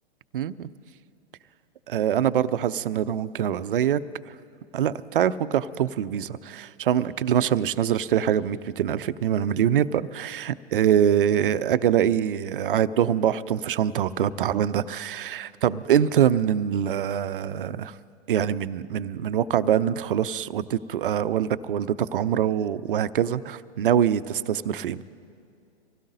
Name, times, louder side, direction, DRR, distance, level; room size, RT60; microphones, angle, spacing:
voice 1, 0.3-0.7 1.9-4.0 4.7-17.9 18.3-25.0, right 9 dB, 55° right, 15 dB, 0.5 m, -24 dB
25.0 x 16.5 x 2.7 m, 2.3 s
figure-of-eight pair, 110°, 33 cm